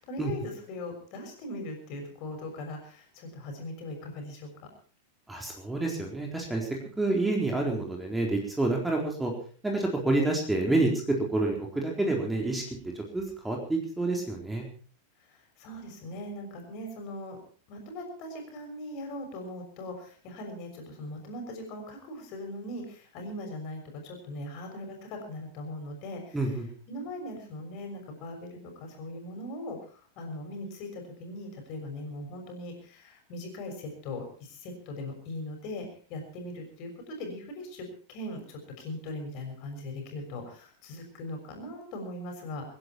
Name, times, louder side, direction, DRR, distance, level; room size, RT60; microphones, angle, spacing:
voice 1, 0.0-4.5 15.3-17.4 17.7-26.4 26.9-42.6, left 1 dB, 40° left, 3 dB, 6.2 m, -40 dB
voice 2, 5.3-6.7 7.0-9.3 9.6-12.6 12.9-14.7 26.3-26.7, right 2 dB, 5° right, 0 dB, 4.1 m, -28 dB
25.5 x 11.0 x 4.6 m, 0.43 s
figure-of-eight pair, 90°, 0 cm